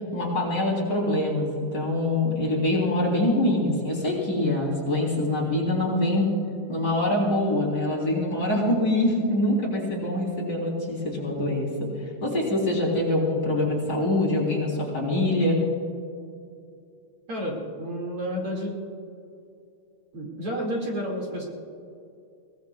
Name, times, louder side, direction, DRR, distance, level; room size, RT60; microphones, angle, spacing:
voice 1, 0.1-6.3 6.7-15.6, left 1 dB, 30° left, -3 dB, 3.9 m, -24 dB
voice 2, 17.3-18.7 20.1-21.4, equal, 45° right, -3 dB, 3.0 m, -30 dB
22.5 x 18.5 x 2.4 m, 2.5 s
omnidirectional pair, 3.6 m